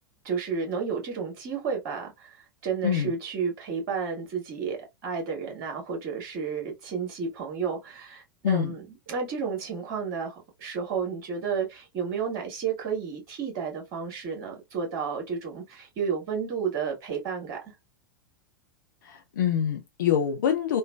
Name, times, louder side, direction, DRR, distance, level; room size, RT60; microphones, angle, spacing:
voice 1, 0.2-2.4 2.6-17.7, right 6 dB, 45° right, 1.5 m, -32 dB
voice 2, 19.1-20.8, left 9 dB, 60° left, 0.5 m, -25 dB
3.2 x 2.1 x 2.2 m
figure-of-eight pair, 90°, 11 cm